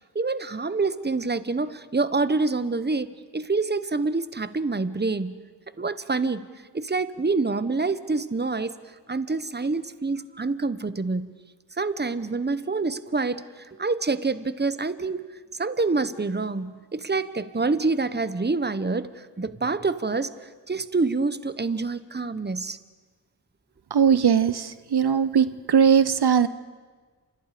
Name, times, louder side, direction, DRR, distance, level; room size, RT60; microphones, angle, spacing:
voice 1, 0.1-3.1 3.3-5.4 5.8-6.5 6.7-8.7 9.1-11.4 11.8-13.4 13.7-15.3 15.6-22.8, right 3 dB, 25° right, 1.0 m, -26 dB
voice 2, 23.9-26.5, right 7 dB, 70° right, 0.8 m, -20 dB
29.5 x 27.0 x 5.1 m
wide cardioid pair, 60°, 40 cm